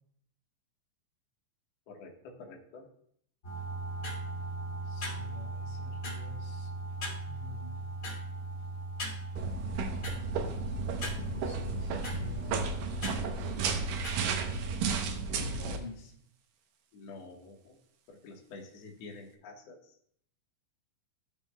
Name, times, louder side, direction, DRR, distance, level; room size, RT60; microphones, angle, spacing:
voice 1, 1.9-2.9 16.9-17.8 18.1-20.0, left 3 dB, 85° left, 0 dB, 1.4 m, -48 dB
sound 1, 3.4-14.9, right 2 dB, 30° left, 2.3 m, -39 dB
voice 2, 4.8-6.7 7.3-7.8 11.2-13.0 15.3-16.1, left 4 dB, 50° left, -3 dB, 3.4 m, -48 dB
sound 2, 9.4-15.8, right 4 dB, 85° right, 1.9 m, -33 dB
16.0 x 6.4 x 2.2 m, 0.66 s
omnidirectional pair, 5.0 m